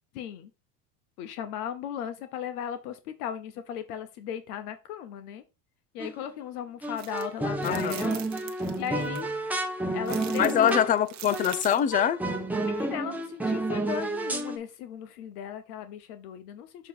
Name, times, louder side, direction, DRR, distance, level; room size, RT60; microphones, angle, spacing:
voice 1, 0.1-0.5 1.2-5.4 5.9-8.2 8.5-9.3 9.9-10.8 12.7-16.9, left 9 dB, 80° left, 0.9 m, -37 dB
sound 1, 6.0-6.4 6.8-11.0 11.3-11.6 11.9-14.6, right 2 dB, 5° right, 0.9 m, -30 dB
sound 2, 7.0-7.2 7.6-9.2 10.1-11.9, right 11 dB, 40° right, 1.0 m, -43 dB
voice 2, 7.6-8.0 10.4-12.2, left 9 dB, 20° left, 0.4 m, -24 dB
6.8 x 3.0 x 5.5 m
supercardioid pair, 110°, 45 cm